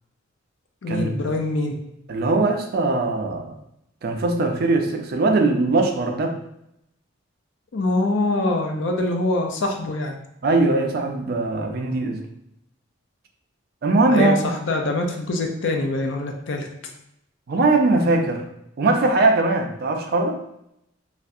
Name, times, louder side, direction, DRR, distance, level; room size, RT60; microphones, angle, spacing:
voice 1, 0.8-1.7 7.7-10.1 14.1-16.7, left 2 dB, 60° left, 3 dB, 0.4 m, -24 dB
voice 2, 2.1-3.6 4.0-6.4 10.4-12.2 13.8-14.5 17.5-18.4 18.8-20.4, right 2 dB, 50° right, 4 dB, 0.4 m, -20 dB
3.3 x 2.4 x 2.6 m, 0.79 s
head